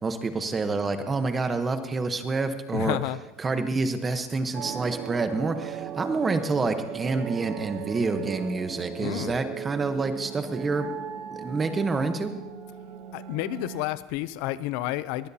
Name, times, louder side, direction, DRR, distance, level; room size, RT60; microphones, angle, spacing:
voice 1, 0.0-3.0 3.4-10.9 11.3-12.3, right 3 dB, 15° right, 8 dB, 1.0 m, -28 dB
voice 2, 2.7-3.2 9.0-9.4 13.1-15.3, left 16 dB, 60° left, 16 dB, 0.5 m, -30 dB
sound 1, 4.5-13.9, right 9 dB, 40° right, 0.7 m, -37 dB
21.5 x 15.5 x 2.8 m, 1.0 s
supercardioid pair, 150°, 0 cm